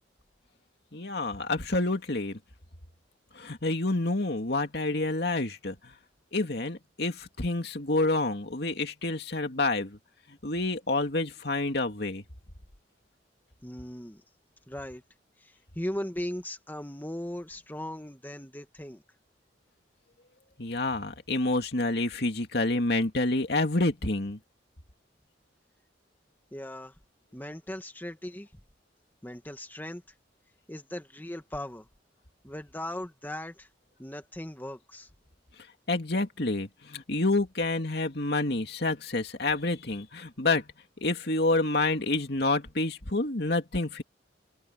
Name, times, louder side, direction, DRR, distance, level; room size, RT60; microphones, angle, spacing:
voice 1, 0.9-2.4 3.4-5.8 6.3-10.0 10.4-12.2 20.6-24.4 35.9-40.6 41.0-44.0, left 2 dB, 60° left, 2.5 m, -28 dB
voice 2, 13.6-14.2 14.7-15.0 15.4-19.0 26.5-26.9 27.3-28.5 29.2-30.0 30.7-31.9 32.4-33.7 34.0-35.1, left 1 dB, 10° left, 1.8 m, -38 dB
head